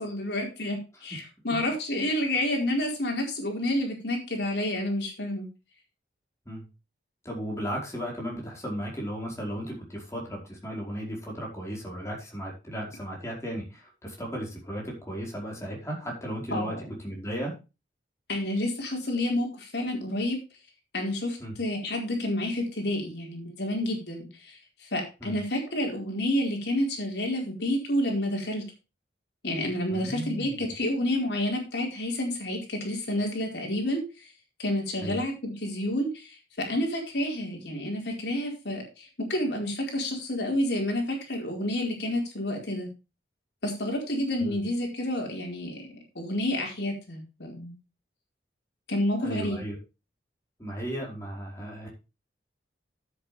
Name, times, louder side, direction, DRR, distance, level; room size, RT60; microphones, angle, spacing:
voice 1, 0.0-5.5 16.5-16.8 18.3-20.4 20.9-28.6 29.4-34.3 34.6-42.9 43.6-45.9 46.1-47.7 48.9-49.6, left 1 dB, 65° left, 1 dB, 4.6 m, -29 dB
voice 2, 7.2-16.7 17.0-17.5 21.4-21.5 25.2-25.4 29.9-30.6 35.0-35.2 44.4-44.6 49.2-49.8 50.6-51.9, equal, 15° left, -1 dB, 4.8 m, -35 dB
13.0 x 8.4 x 3.4 m, 0.28 s
head